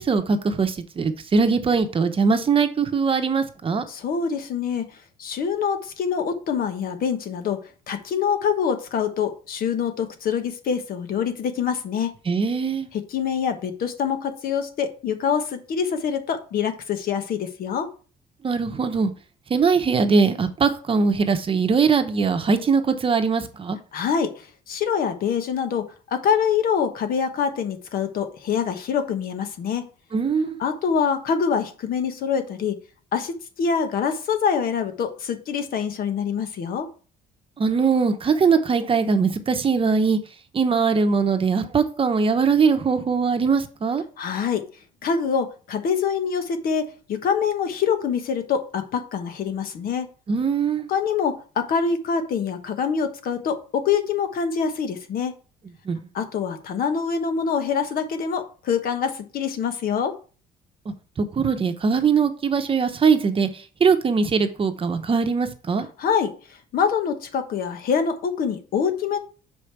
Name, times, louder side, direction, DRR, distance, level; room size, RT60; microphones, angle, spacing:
voice 1, 0.0-3.8 12.3-12.9 18.4-19.1 19.5-23.8 30.1-30.6 37.6-40.2 40.5-44.0 50.3-50.9 55.8-56.0 61.2-65.9, right 5 dB, 30° right, 8 dB, 0.9 m, -21 dB
voice 2, 3.9-7.6 7.9-12.1 12.9-17.9 23.9-29.9 30.6-32.8 33.1-36.9 44.2-44.6 45.0-50.1 50.9-55.3 56.1-60.1 66.0-66.3 66.7-69.2, left 6 dB, 60° left, 8 dB, 1.2 m, -25 dB
6.4 x 5.1 x 4.6 m, 0.38 s
cardioid pair, 110°, 17 cm